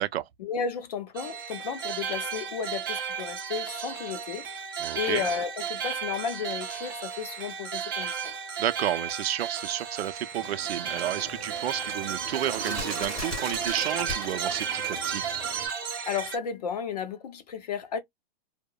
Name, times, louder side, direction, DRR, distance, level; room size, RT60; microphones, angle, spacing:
voice 1, 0.4-4.4 4.9-8.3 16.0-18.0, left 7 dB, 40° left, 0.6 m, -33 dB
sound 1, 1.1-16.4, right 7 dB, 20° right, 0.5 m, -34 dB
voice 2, 4.8-5.2 8.6-15.2, right 12 dB, 85° right, 0.5 m, -31 dB
Bird, 10.4-15.7, right 1 dB, 5° left, 0.8 m, -38 dB
2.8 x 2.1 x 2.2 m
hypercardioid pair, 175°, 30 cm